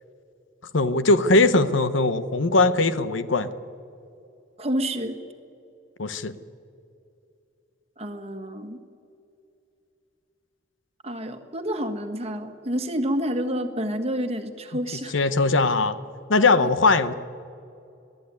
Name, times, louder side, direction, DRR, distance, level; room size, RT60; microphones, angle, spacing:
voice 1, 0.7-3.5 6.0-6.3 15.1-16.0 16.3-17.1, left 3 dB, 70° left, 13 dB, 1.0 m, -20 dB
voice 2, 4.6-5.2 8.0-8.8 11.0-15.1 16.6-16.7, equal, 30° right, 7 dB, 1.6 m, -29 dB
23.5 x 16.0 x 9.8 m, 2.7 s
head